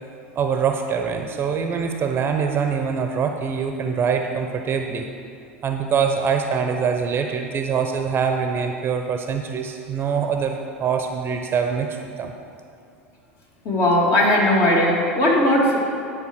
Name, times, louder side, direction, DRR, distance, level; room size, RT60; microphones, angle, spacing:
voice 1, 0.4-5.1 5.6-11.9 12.2-12.3, right 6 dB, 35° right, 5 dB, 0.8 m, -24 dB
voice 2, 13.6-15.8, left 1 dB, 40° left, -3 dB, 2.4 m, -18 dB
9.8 x 5.0 x 6.4 m, 2.5 s
hypercardioid pair, 85°, 7 cm